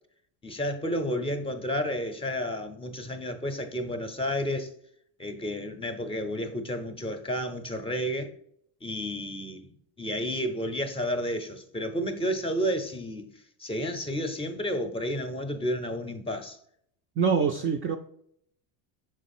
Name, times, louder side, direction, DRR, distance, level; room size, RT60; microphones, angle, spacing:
voice 1, 0.4-4.7 5.2-8.3 8.8-9.7 10.0-13.3 13.6-16.6, equal, 15° left, 0.6 m, -31 dB
voice 2, 17.2-18.0, right 6 dB, 30° right, 0.4 m, -24 dB
6.2 x 3.9 x 4.2 m
supercardioid pair, 120°, 45 cm